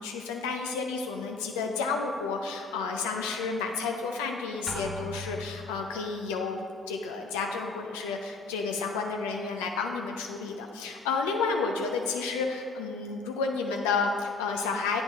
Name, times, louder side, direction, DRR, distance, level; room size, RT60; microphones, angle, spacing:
voice 1, 0.0-15.0, left 4 dB, 85° left, 3 dB, 0.4 m, -31 dB
sound 1, 4.7-6.1, left 1 dB, 5° right, 1.2 m, -39 dB
8.4 x 5.2 x 3.5 m, 2.3 s
hypercardioid pair, 40°, 0 cm